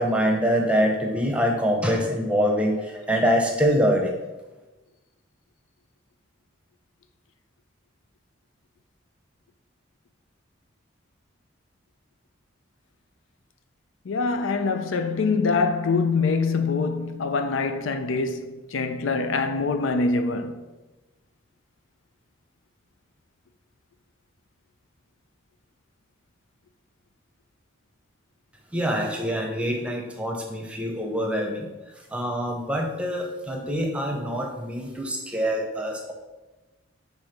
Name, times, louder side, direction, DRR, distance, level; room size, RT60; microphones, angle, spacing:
voice 1, 0.0-4.1 28.7-31.7 32.1-36.1, equal, 5° right, 0.7 m, -25 dB
voice 2, 14.1-20.6, left 4 dB, 75° left, 0.5 m, -24 dB
6.1 x 3.5 x 5.1 m
head